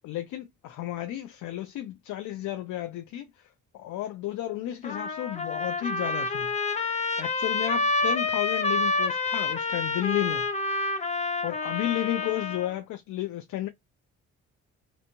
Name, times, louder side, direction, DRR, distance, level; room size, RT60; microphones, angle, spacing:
voice 1, 0.0-3.3 3.7-6.5 7.2-10.5 11.4-13.7, left 13 dB, 75° left, 0.5 m, -32 dB
Trumpet, 4.8-12.7, left 3 dB, 20° left, 0.6 m, -28 dB
3.0 x 2.1 x 2.5 m
cardioid pair, 90°, 30 cm